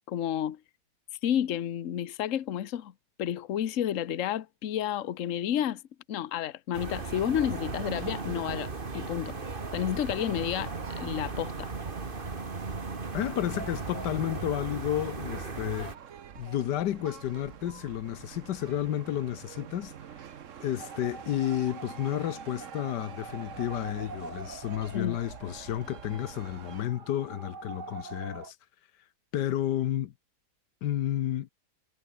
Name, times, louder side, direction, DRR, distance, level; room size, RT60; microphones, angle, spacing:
voice 1, 0.1-0.6 1.2-2.9 3.2-5.8 6.1-9.4 9.7-11.7 24.9-25.2, left 10 dB, 55° left, 1.2 m, -31 dB
sound 1, 6.7-16.0, right 4 dB, 30° right, 2.0 m, -36 dB
sound 2, 10.6-26.8, right 8 dB, 55° right, 1.2 m, -48 dB
voice 2, 13.1-15.9 16.4-19.9 20.6-28.5 29.3-30.1 30.8-31.5, left 12 dB, 85° left, 1.5 m, -31 dB
sound 3, 20.8-28.5, right 5 dB, 80° right, 3.4 m, -45 dB
omnidirectional pair, 1.8 m